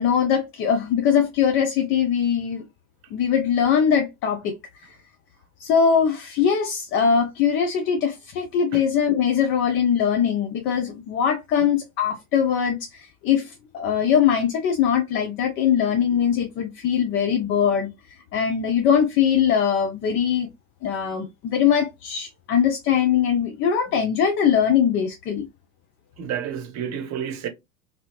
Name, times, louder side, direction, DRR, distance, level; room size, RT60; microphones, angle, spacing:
voice 1, 0.0-2.6 3.1-4.6 4.8-5.0 5.6-20.5 20.8-25.5, left 8 dB, 30° left, 0.4 m, -21 dB
voice 2, 26.2-27.5, right 8 dB, 40° right, 0.8 m, -30 dB
2.7 x 2.6 x 2.9 m
figure-of-eight pair, 80°, 42 cm